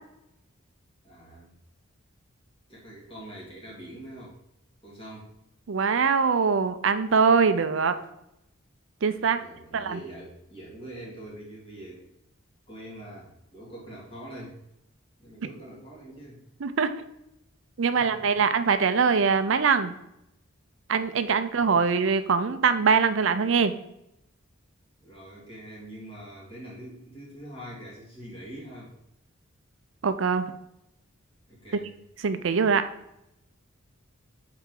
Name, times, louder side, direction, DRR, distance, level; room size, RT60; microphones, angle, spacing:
voice 1, 1.0-1.5 2.7-4.4 4.8-5.3 9.4-12.1 12.7-14.6 15.2-16.4 18.0-18.3 21.5-21.7 25.0-28.9 31.5-31.9, right 1 dB, 25° left, -5 dB, 2.4 m, -44 dB
voice 2, 5.7-8.0 9.0-9.4 9.7-10.0 16.6-16.9 17.8-19.9 20.9-23.7 30.0-30.5 31.7-31.8 32.2-32.9, right 5 dB, 65° right, 10 dB, 0.5 m, -23 dB
7.2 x 4.8 x 3.9 m, 0.82 s
head